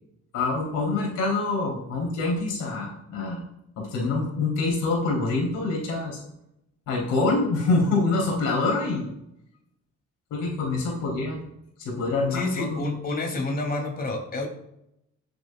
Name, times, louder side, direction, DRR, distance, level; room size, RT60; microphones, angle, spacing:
voice 1, 0.3-3.4 3.8-6.2 6.9-9.1 10.3-11.4 11.8-12.9, left 3 dB, 90° left, -1 dB, 3.6 m, -25 dB
voice 2, 12.3-14.5, left 2 dB, 30° left, 1 dB, 2.8 m, -29 dB
18.0 x 7.8 x 2.4 m, 0.81 s
cardioid pair, 90°, 30 cm